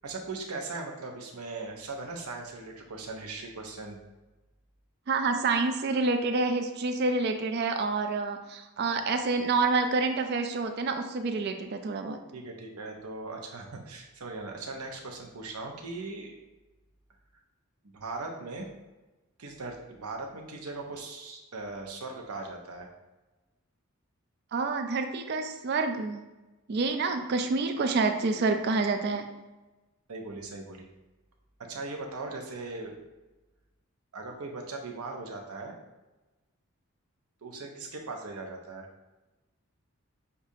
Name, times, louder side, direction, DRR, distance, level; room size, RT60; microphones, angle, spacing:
voice 1, 0.0-4.0 12.3-16.4 17.9-18.7 19.4-22.9 30.1-30.9 31.6-33.0 34.1-35.7 37.4-38.9, right 3 dB, 90° right, 2 dB, 0.7 m, -39 dB
voice 2, 5.1-12.2 24.5-26.2 26.7-29.3, right 3 dB, 50° right, 6 dB, 0.3 m, -28 dB
6.6 x 2.4 x 2.7 m, 1.1 s
head